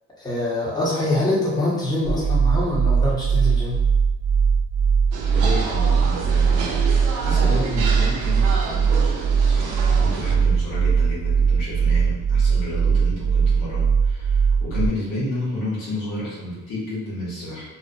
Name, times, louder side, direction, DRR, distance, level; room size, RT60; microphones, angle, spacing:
voice 1, 0.2-3.8, left 1 dB, 15° left, -6 dB, 0.8 m, -24 dB
sound 1, 2.0-14.9, right 6 dB, 60° right, 0.9 m, -20 dB
sound 2, 5.1-10.4, right 4 dB, 85° right, 0.5 m, -30 dB
voice 2, 5.2-17.6, left 1 dB, 90° left, -8 dB, 1.1 m, -31 dB
2.5 x 2.1 x 2.5 m, 1.0 s
cardioid pair, 90°, 30 cm